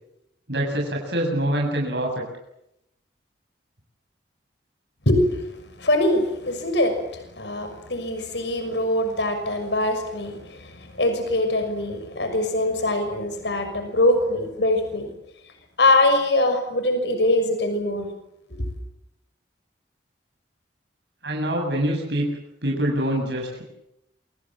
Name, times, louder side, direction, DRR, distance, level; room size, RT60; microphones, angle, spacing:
voice 1, 0.5-2.3 21.2-23.6, right 1 dB, 70° right, 0 dB, 7.5 m, -25 dB
voice 2, 5.1-5.4 5.8-15.1 15.8-18.1 18.5-18.6, left 1 dB, 75° left, 7 dB, 6.2 m, -23 dB
28.0 x 26.5 x 7.6 m, 0.84 s
head